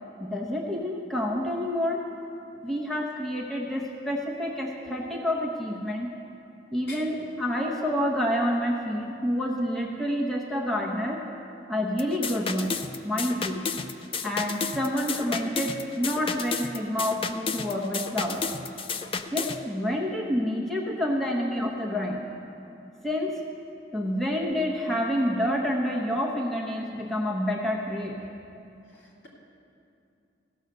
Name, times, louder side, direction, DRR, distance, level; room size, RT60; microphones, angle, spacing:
voice 1, 0.2-2.0 2.6-6.1 6.7-11.2 11.7-12.8 13.0-13.7 14.2-18.5 19.3-22.3 23.0-23.4 23.9-28.2, equal, ahead, -3 dB, 0.9 m, -28 dB
sound 1, 12.0-19.6, left 5 dB, 30° left, 0.4 m, -32 dB
voice 2, 28.9-29.3, left 2 dB, 80° left, -5 dB, 2.5 m, -44 dB
16.0 x 6.4 x 6.6 m, 2.7 s
head